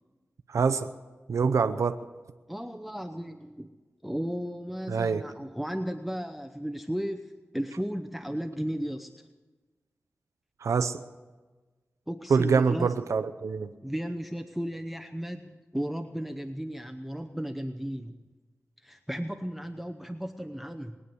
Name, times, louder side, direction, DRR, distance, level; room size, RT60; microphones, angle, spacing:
voice 1, 0.5-0.9 1.3-1.9 4.9-5.2 10.6-11.0 12.3-13.7, right 5 dB, 85° right, 10 dB, 0.6 m, -25 dB
voice 2, 2.5-3.7 4.0-9.1 12.1-12.9 13.8-18.2 18.8-21.0, equal, ahead, 5 dB, 0.8 m, -35 dB
21.0 x 9.7 x 6.9 m, 1.3 s
wide cardioid pair, 70°, 5 cm